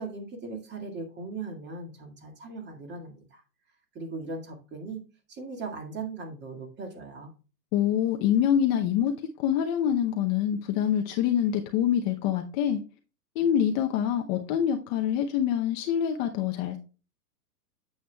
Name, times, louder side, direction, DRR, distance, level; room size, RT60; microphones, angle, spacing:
voice 1, 0.0-3.4 3.9-5.0 5.3-7.3, right 3 dB, 20° right, 2.0 m, -38 dB
voice 2, 7.7-9.1 9.4-12.8 13.4-16.8, left 9 dB, 30° left, 0.7 m, -25 dB
9.1 x 8.0 x 2.3 m
hypercardioid pair, 135°, 49 cm